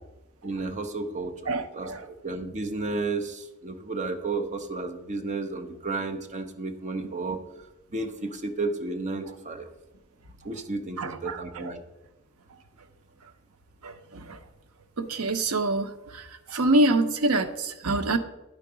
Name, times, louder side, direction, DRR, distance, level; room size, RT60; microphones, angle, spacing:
voice 1, 0.4-1.3 1.7-1.9 2.2-7.4 7.9-9.7 10.4-11.8, right 3 dB, 35° right, 5 dB, 0.7 m, -32 dB
voice 2, 1.5-2.1 9.3-9.4 11.0-11.7 13.2-13.3 13.8-14.4 15.0-18.2, right 2 dB, 80° right, 10 dB, 0.7 m, -26 dB
10.5 x 4.6 x 4.9 m, 1.0 s
head